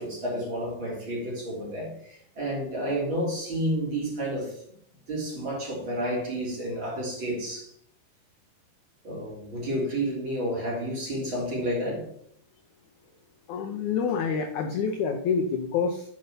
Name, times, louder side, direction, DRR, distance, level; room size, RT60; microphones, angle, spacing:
voice 1, 0.0-4.6 5.1-7.7 9.0-12.0, right 1 dB, 30° right, 3.9 m, -30 dB
voice 2, 13.5-16.1, left 6 dB, 80° left, 1.7 m, -27 dB
10.0 x 5.3 x 5.9 m
omnidirectional pair, 4.6 m